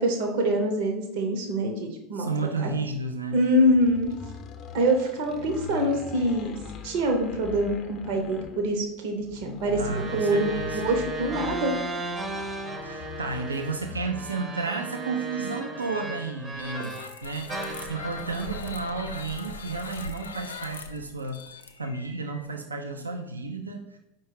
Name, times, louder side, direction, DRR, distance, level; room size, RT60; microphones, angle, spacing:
voice 1, 0.0-2.3 2.6-2.7 3.3-4.1 4.7-6.6 6.8-11.7, right 1 dB, 60° right, 2 dB, 0.7 m, -25 dB
voice 2, 2.1-3.4 9.8-10.8 12.8-21.4 21.8-24.0, right 4 dB, 85° right, 3 dB, 0.3 m, -32 dB
sound 1, 3.6-14.4, left 5 dB, 40° left, 0.6 m, -42 dB
sound 2, 9.8-17.2 17.5-19.9, right 2 dB, 20° right, 0.6 m, -36 dB
sound 3, 16.5-22.5, left 4 dB, 85° left, 0.4 m, -40 dB
4.7 x 2.2 x 4.6 m, 0.91 s
figure-of-eight pair, 80°, 0 cm